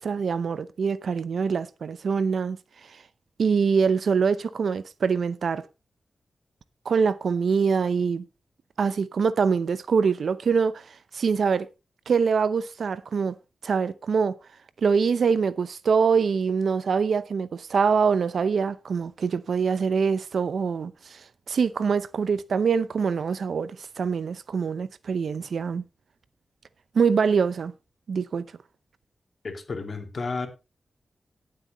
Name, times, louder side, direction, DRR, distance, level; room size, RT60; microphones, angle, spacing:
voice 1, 0.0-2.6 3.4-5.7 6.9-8.3 8.8-11.7 12.1-13.3 13.6-14.3 14.8-25.8 26.9-27.7 28.1-28.5, right 5 dB, 80° right, 0.7 m, -24 dB
voice 2, 29.4-30.5, left 4 dB, 55° left, 2.5 m, -32 dB
17.5 x 7.9 x 3.1 m
cardioid pair, 60°, 0 cm